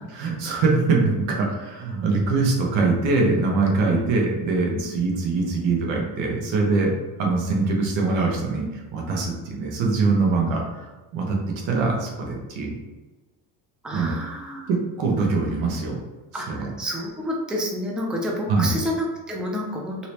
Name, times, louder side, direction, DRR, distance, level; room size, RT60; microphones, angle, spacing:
voice 1, 0.2-6.9 7.2-10.8 11.1-12.7 13.9-14.1 14.7-16.0 16.5-16.7 18.5-18.7, right 3 dB, 80° right, 0 dB, 1.0 m, -23 dB
voice 2, 13.8-14.7 16.3-20.1, equal, ahead, -1 dB, 0.5 m, -29 dB
3.2 x 2.8 x 2.9 m, 1.2 s
cardioid pair, 100°, 44 cm